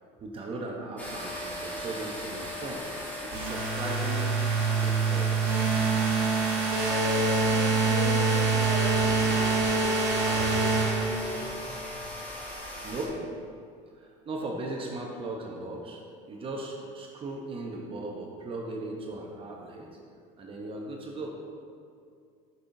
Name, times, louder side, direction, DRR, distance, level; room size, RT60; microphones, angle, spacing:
voice 1, 0.2-2.8 3.2-4.3 4.6-5.4 12.8-13.2 14.0-19.9 20.4-21.3, right 2 dB, 35° right, 0 dB, 0.8 m, -37 dB
sound 1, 1.0-13.1, left 1 dB, 10° left, 1.4 m, -39 dB
sound 2, 3.3-11.6, right 4 dB, 65° right, 1.5 m, -25 dB
voice 2, 6.7-11.7, left 1 dB, 30° left, -3 dB, 1.4 m, -37 dB
6.5 x 5.5 x 2.6 m, 2.4 s
supercardioid pair, 110°, 16 cm